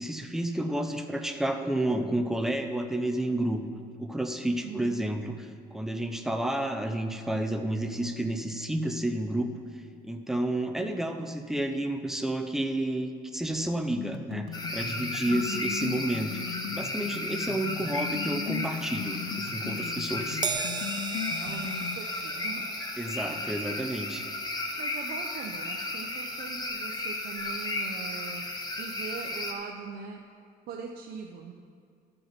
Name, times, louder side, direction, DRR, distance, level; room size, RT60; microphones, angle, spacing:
voice 1, 0.0-3.6 4.0-9.5 10.0-16.4 16.7-20.4 23.0-24.3, right 1 dB, ahead, 5 dB, 0.7 m, -30 dB
voice 2, 4.6-5.0 15.2-15.7 21.4-22.7 24.8-28.4 28.8-30.2 30.7-31.5, right 6 dB, 65° right, 0 dB, 0.8 m, -41 dB
sound 1, 14.0-22.0, left 9 dB, 75° left, 0.5 m, -38 dB
sound 2, 14.5-29.5, left 2 dB, 25° left, 1.2 m, -34 dB
Crash cymbal, 20.4-27.0 27.4-27.6 28.6-28.7, right 6 dB, 25° right, 0.4 m, -40 dB
12.5 x 5.5 x 6.0 m, 2.2 s
cardioid pair, 110°, 17 cm